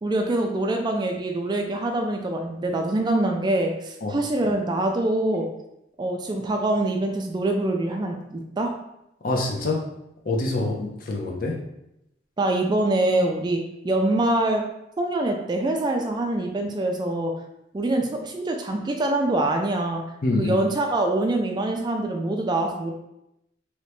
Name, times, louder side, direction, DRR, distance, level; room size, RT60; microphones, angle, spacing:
voice 1, 0.0-5.5 6.0-8.7 12.4-14.6 15.0-17.3 17.7-20.0 20.4-22.9, right 2 dB, 25° right, 3 dB, 0.3 m, -24 dB
voice 2, 9.2-9.8 10.3-11.6 20.2-20.6, left 2 dB, 50° left, 0 dB, 0.6 m, -25 dB
3.2 x 2.8 x 3.0 m, 0.86 s
head